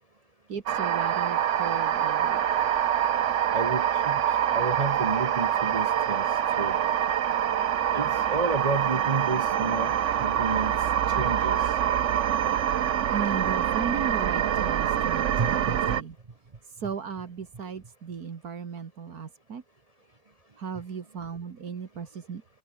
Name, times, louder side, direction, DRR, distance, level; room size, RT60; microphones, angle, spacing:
voice 1, 0.5-2.5 13.1-16.2 16.8-19.6 20.6-22.6, right 6 dB, 80° right, 2.2 m, -36 dB
sound 1, 0.7-16.0, right 10 dB, 60° right, 1.1 m, -25 dB
voice 2, 3.5-4.2 4.5-6.8 7.9-10.9 11.2-11.8 15.4-16.0, right 3 dB, 25° right, 1.1 m, -31 dB
open air
omnidirectional pair, 1.6 m